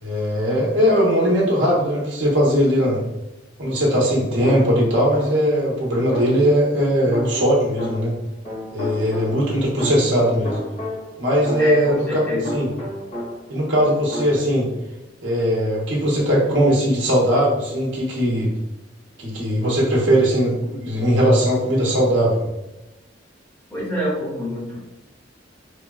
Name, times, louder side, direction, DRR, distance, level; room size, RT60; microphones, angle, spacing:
voice 1, 0.0-3.0 3.6-8.1 8.7-10.6 11.2-12.2 12.5-12.7 13.5-14.7 15.2-18.5 19.2-22.4, equal, 75° right, -4 dB, 0.9 m, -19 dB
sound 1, 4.4-5.6 6.1-8.2 8.4-13.5 13.8-14.4, equal, 40° left, 1.2 m, -32 dB
voice 2, 11.6-12.5 23.7-24.8, equal, 10° left, -7 dB, 1.0 m, -26 dB
3.2 x 2.2 x 2.3 m, 0.95 s
head